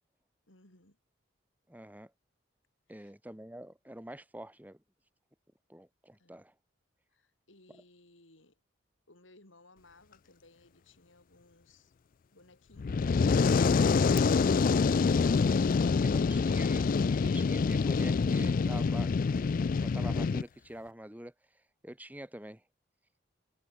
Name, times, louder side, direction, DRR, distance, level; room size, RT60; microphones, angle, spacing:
voice 1, 0.5-1.0 2.9-3.1 6.2-6.4 7.1-8.6 9.1-11.9 12.3-13.6, left 2 dB, 85° left, 6.1 m, -61 dB
voice 2, 1.7-2.1 2.9-4.8 5.7-6.5 16.0-16.8 17.1-19.5 19.8-21.3 21.8-22.6, right 1 dB, 10° right, 1.7 m, -46 dB
Fire, 12.8-20.4, left 5 dB, 45° left, 0.3 m, -26 dB
head